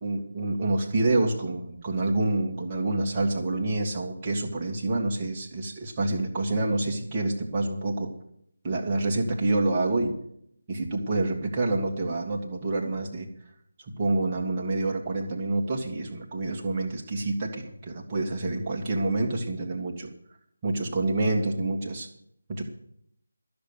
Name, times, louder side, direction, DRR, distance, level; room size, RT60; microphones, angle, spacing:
voice 1, 0.0-8.1 8.6-10.2 10.7-13.3 13.9-20.1 20.6-22.1 22.5-22.6, right 2 dB, 20° right, 0 dB, 1.8 m, -27 dB
13.0 x 6.9 x 8.0 m, 0.72 s
figure-of-eight pair, 155°, 0 cm